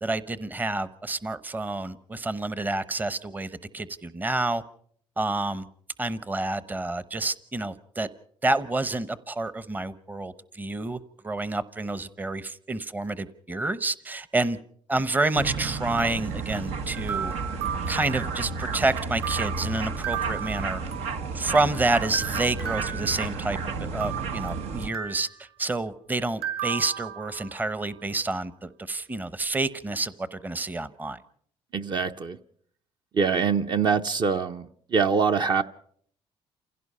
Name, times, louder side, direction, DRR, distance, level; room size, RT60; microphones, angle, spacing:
voice 1, 0.0-4.6 5.2-5.6 6.0-8.1 8.4-14.6 14.9-17.3 17.9-20.8 21.3-23.6 23.9-31.2, right 2 dB, 15° right, 15 dB, 0.8 m, -29 dB
sound 1, 15.3-24.9, right 4 dB, 85° right, 1.4 m, -32 dB
sound 2, 16.9-18.8 19.2-21.8 22.1-23.6 24.0-25.4 26.4-27.8, right 9 dB, 65° right, 3.4 m, -35 dB
voice 2, 31.7-32.4 33.1-35.6, right 5 dB, 45° right, 7 dB, 0.8 m, -24 dB
28.5 x 16.5 x 5.5 m, 0.63 s
cardioid pair, 115°, 11 cm